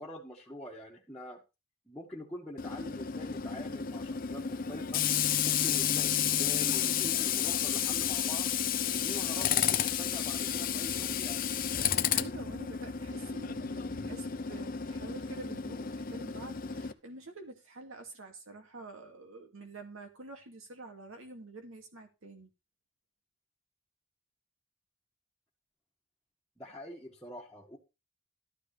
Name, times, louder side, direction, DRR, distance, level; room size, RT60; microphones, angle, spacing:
voice 1, 0.0-1.4 1.9-5.0 5.4-8.5 8.9-11.5 26.6-27.8, left 1 dB, 5° left, 1.7 m, -45 dB
Tools, 2.6-16.9, left 9 dB, 45° left, 0.7 m, -31 dB
voice 2, 12.1-22.5, right 3 dB, 80° right, 2.3 m, -48 dB
13.0 x 9.6 x 3.3 m
head